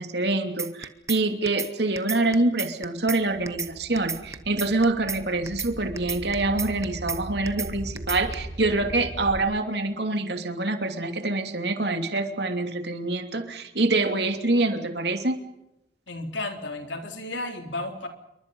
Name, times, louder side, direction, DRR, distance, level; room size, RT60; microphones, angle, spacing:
voice 1, 0.0-15.4, right 2 dB, 65° right, 6 dB, 2.9 m, -26 dB
sound 1, 0.6-1.2 1.5-1.7 2.0-3.2 3.5-3.7 4.0-5.2 5.5-5.7 6.0-7.2 7.5-7.7 8.0-8.3, right 6 dB, 15° right, 1.2 m, -32 dB
sound 2, 3.2-9.4, right 1 dB, 30° right, 3.7 m, -39 dB
voice 2, 16.1-18.1, left 2 dB, 80° left, 4 dB, 4.0 m, -33 dB
28.0 x 23.5 x 5.6 m, 0.88 s
head